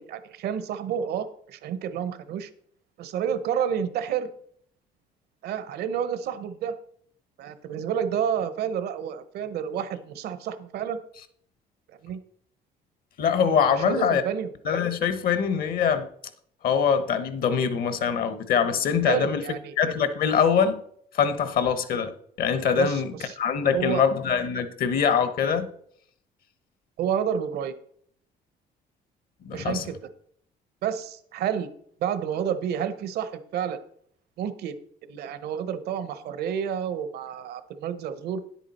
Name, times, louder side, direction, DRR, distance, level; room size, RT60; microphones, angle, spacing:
voice 1, 0.0-2.5 3.0-4.3 5.4-6.8 7.4-11.0 12.0-12.2 13.7-14.5 19.0-19.7 22.8-23.4 23.7-24.0 27.0-27.8 29.5-29.9 30.8-31.7 32.0-33.8 34.4-34.7 35.1-38.4, right 8 dB, 70° right, 0.9 m, -29 dB
voice 2, 13.2-14.2 14.6-16.1 16.6-19.4 19.8-20.8 21.1-25.7 29.4-29.8, left 7 dB, 60° left, 1.0 m, -23 dB
10.0 x 8.4 x 4.2 m
cardioid pair, 110°, 17 cm